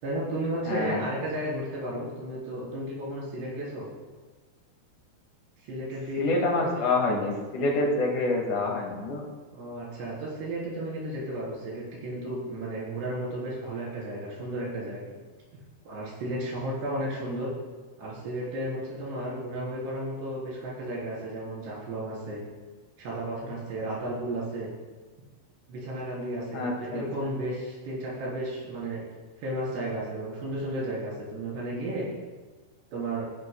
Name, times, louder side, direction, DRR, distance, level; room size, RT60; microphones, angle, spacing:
voice 1, 0.0-3.9 5.6-6.4 9.5-15.1 15.8-17.5 18.0-22.4 23.0-24.7 25.7-29.0 29.4-32.1 32.9-33.3, right 1 dB, 85° right, -6 dB, 5.9 m, -33 dB
voice 2, 0.7-1.0 6.2-9.2 26.5-27.1, left 2 dB, 55° left, -1 dB, 3.1 m, -27 dB
17.5 x 11.5 x 2.2 m, 1.3 s
omnidirectional pair, 4.7 m